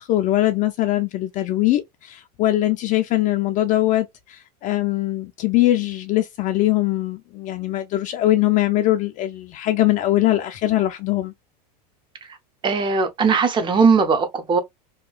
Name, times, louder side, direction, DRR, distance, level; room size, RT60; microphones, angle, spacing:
voice 1, 0.0-11.3, left 15 dB, 40° left, 0.4 m, -21 dB
voice 2, 12.6-14.6, right 5 dB, 25° right, 0.7 m, -18 dB
2.8 x 2.3 x 2.2 m
hypercardioid pair, 110°, 21 cm